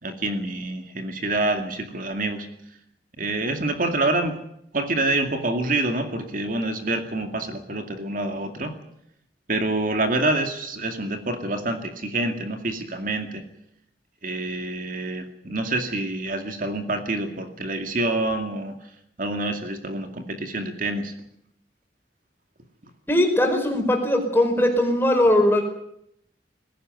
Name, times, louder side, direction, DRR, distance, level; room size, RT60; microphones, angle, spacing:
voice 1, 0.0-2.5 3.2-4.4 4.7-8.7 9.5-13.4 14.2-18.7 19.2-21.1, right 2 dB, 50° right, 6 dB, 2.3 m, -27 dB
voice 2, 23.1-25.6, left 1 dB, 15° left, 3 dB, 5.0 m, -20 dB
20.5 x 17.0 x 9.3 m, 0.75 s
head